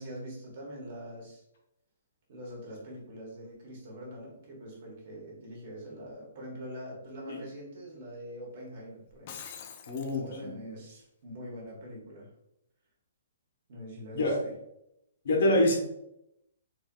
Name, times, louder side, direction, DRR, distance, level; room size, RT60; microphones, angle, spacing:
voice 1, 0.0-1.4 2.3-9.4 9.7-12.3 13.7-14.5, equal, 40° right, -3 dB, 1.2 m, -44 dB
Shatter, 9.1-10.2, left 8 dB, 30° left, 0.3 m, -44 dB
voice 2, 9.9-10.5 14.1-14.4 15.2-15.8, left 1 dB, 55° left, -1 dB, 0.9 m, -26 dB
4.2 x 2.7 x 2.3 m, 0.83 s
hypercardioid pair, 170°, 0 cm